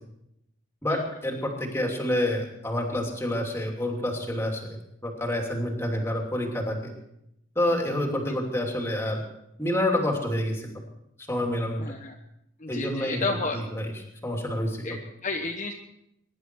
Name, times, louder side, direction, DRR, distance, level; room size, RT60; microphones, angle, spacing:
voice 1, 0.8-6.9 7.5-9.2 9.6-10.7 11.3-11.8 12.7-13.9 14.2-15.0, left 1 dB, 10° left, 1 dB, 2.8 m, -28 dB
voice 2, 11.8-12.2 12.6-13.6 14.8-15.7, left 3 dB, 35° left, 1 dB, 1.1 m, -32 dB
23.0 x 11.0 x 4.7 m, 0.81 s
head